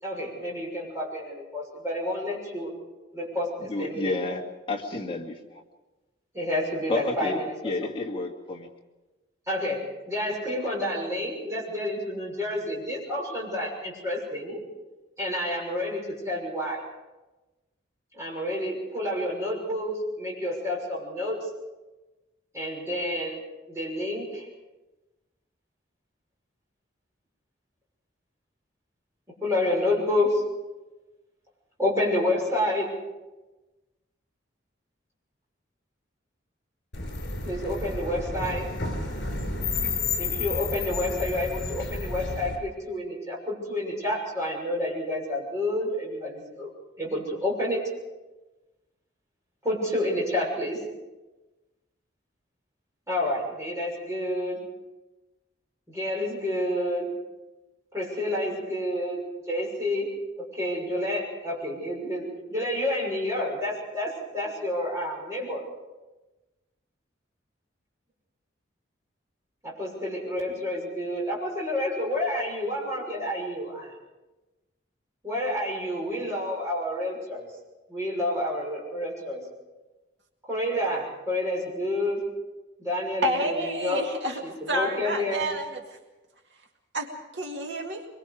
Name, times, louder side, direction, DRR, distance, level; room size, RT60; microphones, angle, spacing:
voice 1, 0.0-2.7 3.1-4.3 6.3-7.9 9.5-14.6 15.2-16.8 18.1-21.5 22.5-23.4 23.7-24.5 29.4-30.4 31.8-32.9 37.4-38.7 40.2-46.7 47.0-47.8 49.6-50.8 53.1-54.6 55.9-57.1 57.9-60.1 60.5-65.7 69.6-73.9 75.2-77.5 77.9-79.4 80.5-82.2 82.8-84.1 84.4-85.5, left 1 dB, 15° right, -4 dB, 6.3 m, -29 dB
voice 2, 3.7-4.4 4.7-5.6 6.9-8.7, left 2 dB, 25° left, -1 dB, 2.2 m, -31 dB
sound 1, 36.9-42.6, left 3 dB, 65° left, 4.7 m, -31 dB
voice 3, 83.2-85.8 86.9-88.1, right 1 dB, 65° right, 2 dB, 2.1 m, -29 dB
24.0 x 23.0 x 5.0 m, 1.1 s
head